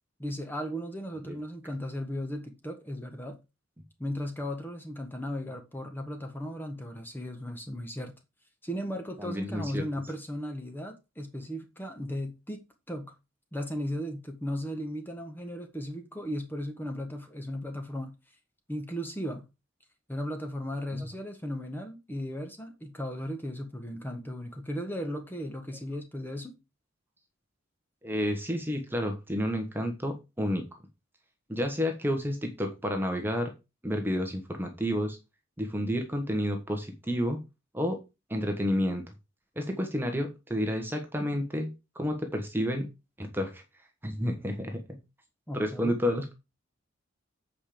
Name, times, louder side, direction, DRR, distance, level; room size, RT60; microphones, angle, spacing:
voice 1, 0.2-3.4 4.0-8.1 8.6-13.1 13.5-18.1 18.7-19.4 20.1-26.6 45.5-46.0, equal, 10° left, 1.6 m, -36 dB
voice 2, 9.2-9.8 20.9-21.1 28.0-30.6 31.5-33.5 33.8-35.2 35.6-37.4 37.7-38.0 38.3-39.0 39.6-41.7 41.9-42.9 43.2-43.6 44.0-44.8 45.5-46.3, equal, 10° right, 1.4 m, -30 dB
8.5 x 5.1 x 5.1 m
head